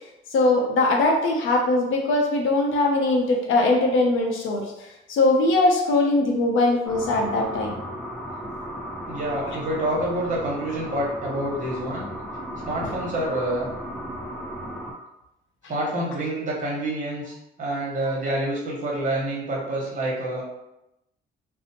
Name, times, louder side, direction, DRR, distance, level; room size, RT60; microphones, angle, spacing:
voice 1, 0.3-4.6 5.1-7.8 9.5-9.6 12.8-12.9, left 2 dB, 80° left, 0 dB, 0.6 m, -21 dB
sound 1, 6.8-14.9, equal, ahead, 0.5 m, -35 dB
voice 2, 9.1-12.1 12.6-13.7 15.7-20.4, right 1 dB, 40° right, -4 dB, 1.0 m, -27 dB
2.6 x 2.0 x 2.7 m, 0.87 s
cardioid pair, 90°, 20 cm